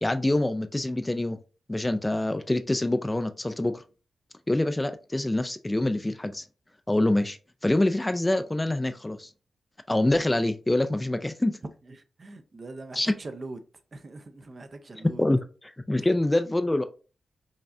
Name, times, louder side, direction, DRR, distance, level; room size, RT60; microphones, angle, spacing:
voice 1, 0.0-1.4 1.7-3.8 4.5-6.4 6.9-7.4 7.6-9.3 9.9-11.5 12.9-13.1 15.2-15.4 15.9-16.8, left 1 dB, 15° left, 0.3 m, -25 dB
voice 2, 11.8-13.6 13.9-15.3 16.0-16.1, right 2 dB, 45° right, 0.6 m, -42 dB
5.3 x 2.4 x 2.6 m
cardioid pair, 65°, 0 cm